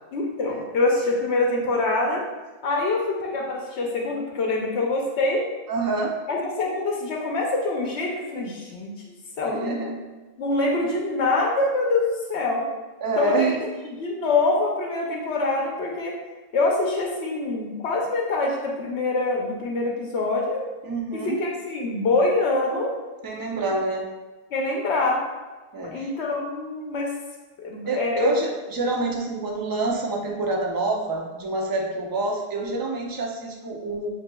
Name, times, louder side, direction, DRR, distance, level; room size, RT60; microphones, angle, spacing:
voice 1, 0.1-2.2 2.6-5.4 6.3-8.9 9.4-9.9 10.4-12.6 13.2-13.6 13.8-16.2 16.5-20.6 21.1-22.9 24.5-25.2 25.8-27.1 27.6-28.3, left 2 dB, 80° left, -1 dB, 1.0 m, -25 dB
voice 2, 5.7-6.1 9.5-9.9 13.0-13.7 20.8-21.4 23.2-24.0 25.7-26.1 27.9-34.1, right 2 dB, 30° right, 0 dB, 0.4 m, -26 dB
7.6 x 2.8 x 2.3 m, 1.2 s
omnidirectional pair, 1.1 m